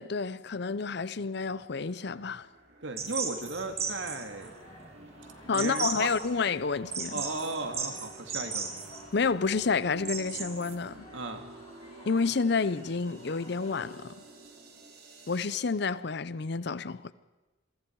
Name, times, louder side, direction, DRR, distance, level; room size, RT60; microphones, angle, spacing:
voice 1, 0.0-2.5 5.5-7.2 9.1-11.1 12.1-14.1 15.3-17.1, left 4 dB, 60° left, 0.7 m, -29 dB
sound 1, 0.6-15.6, right 2 dB, 55° right, 3.7 m, -52 dB
voice 2, 2.8-4.5 5.4-6.1 7.1-8.8 11.1-11.5, right 2 dB, 70° right, 2.4 m, -36 dB
sound 2, 3.0-10.7, right 5 dB, 35° right, 2.7 m, -37 dB
sound 3, 4.3-14.8, left 2 dB, 30° left, 5.6 m, -54 dB
28.5 x 22.5 x 4.7 m
head